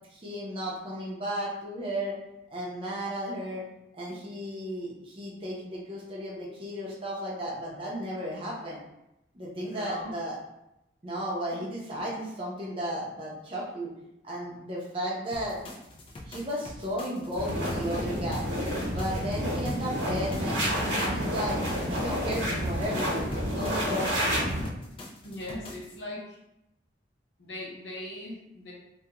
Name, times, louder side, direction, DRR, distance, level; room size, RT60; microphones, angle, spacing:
voice 1, 0.1-2.2 2.5-3.6 3.9-8.8 9.3-10.3 11.0-13.9 14.2-15.6 16.2-18.5 18.9-21.6 21.9-23.1 23.5-24.1, equal, 30° right, -5 dB, 0.6 m, -34 dB
voice 2, 9.6-10.2 25.2-26.4 27.4-28.7, left 1 dB, 75° left, -3 dB, 0.7 m, -39 dB
sound 1, 15.3-26.0, left 1 dB, 30° left, 0.3 m, -45 dB
sound 2, 17.4-24.7, equal, 85° right, 1.0 m, -29 dB
2.3 x 2.2 x 2.9 m, 0.86 s
head